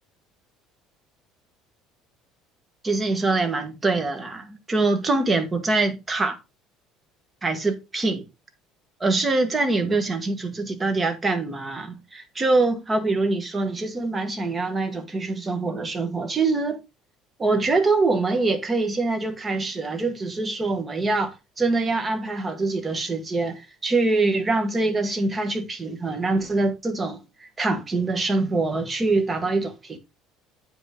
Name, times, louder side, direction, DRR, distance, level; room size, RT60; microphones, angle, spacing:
voice 1, 2.8-6.4 7.4-8.2 9.0-16.8 17.4-30.0, right 3 dB, 20° right, 1.3 m, -24 dB
8.8 x 5.3 x 3.7 m
cardioid pair, 145°, 0 cm